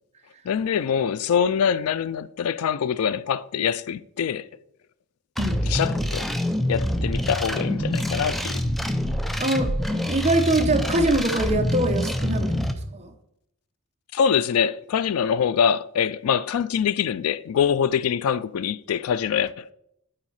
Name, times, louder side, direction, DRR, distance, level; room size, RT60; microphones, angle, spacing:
voice 1, 0.5-4.5 5.7-6.3 6.7-8.6 14.1-19.7, left 7 dB, 70° left, 0.3 m, -24 dB
sound 1, 5.4-12.7, equal, ahead, 0.5 m, -26 dB
voice 2, 9.4-9.7 10.1-12.5 12.9-13.1, right 2 dB, 30° right, 0.9 m, -23 dB
9.0 x 4.2 x 5.5 m
head